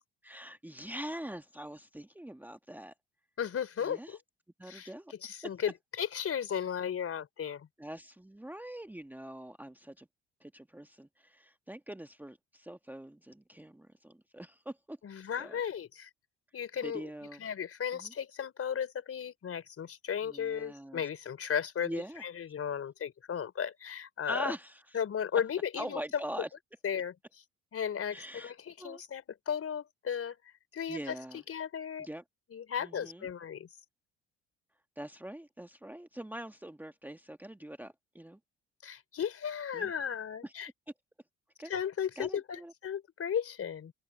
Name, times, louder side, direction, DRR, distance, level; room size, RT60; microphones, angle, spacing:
voice 1, 0.2-2.9 3.8-4.2 4.6-5.1 5.4-5.5 7.8-10.1 10.4-15.0 15.4-15.6 16.8-17.4 17.9-18.1 20.2-21.0 21.8-22.2 24.3-25.0 25.8-26.5 28.1-28.5 28.8-29.0 30.9-31.4 32.0-32.2 32.8-33.3 35.0-38.4 39.7-39.9 40.4-40.5 41.6-41.7 42.2-42.7, right 1 dB, 5° right, 1.5 m, -43 dB
voice 2, 3.4-4.2 4.6-4.9 5.2-7.7 15.0-16.1 16.5-17.1 17.4-24.5 24.9-26.2 26.8-27.1 27.7-30.4 30.7-32.1 32.5-33.7 38.8-40.7 41.7-43.9, left 8 dB, 45° left, 4.3 m, -35 dB
hypercardioid pair, 65°, 31 cm